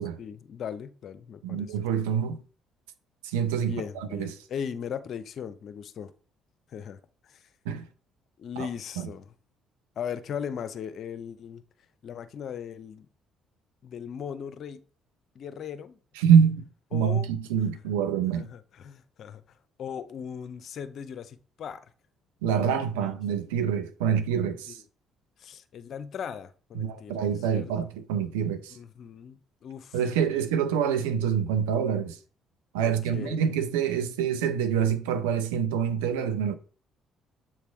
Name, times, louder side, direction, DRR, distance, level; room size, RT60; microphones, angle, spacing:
voice 1, 0.2-1.8 3.6-6.1 6.7-7.5 8.4-9.3 10.0-11.6 12.0-13.1 13.8-14.8 15.3-16.0 16.9-17.3 18.3-19.4 19.8-21.8 22.4-23.1 24.7-24.8 25.4-27.7 28.7-30.0 30.3-30.4 32.8-33.4, left 8 dB, 60° left, 0.6 m, -38 dB
voice 2, 1.4-2.4 3.2-4.3 7.7-7.9 8.6-8.7 9.0-9.1 16.2-16.6 16.9-18.5 22.4-24.8 26.7-28.8 29.9-32.2 32.7-36.5, right 8 dB, 85° right, 0.6 m, -26 dB
7.6 x 3.3 x 4.5 m
hypercardioid pair, 55°, 0 cm